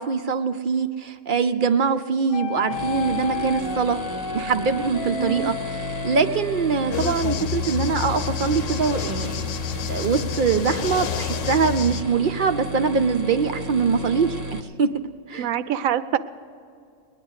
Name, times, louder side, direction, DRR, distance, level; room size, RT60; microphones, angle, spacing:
voice 1, 0.0-4.0 4.3-5.5 6.0-9.5 9.9-14.4 14.8-14.9 15.3-15.5, right 5 dB, 60° right, 9 dB, 0.5 m, -23 dB
sound 1, 2.3-7.0 7.6-8.9, left 8 dB, 50° left, 0.7 m, -33 dB
sound 2, 2.7-14.6, right 1 dB, 20° right, 0.7 m, -34 dB
voice 2, 5.1-5.5 15.4-16.2, right 10 dB, 90° right, 13 dB, 1.1 m, -25 dB
sound 3, 6.9-12.0, left 9 dB, 75° left, 1.0 m, -29 dB
21.0 x 9.7 x 6.3 m, 2.4 s
omnidirectional pair, 1.4 m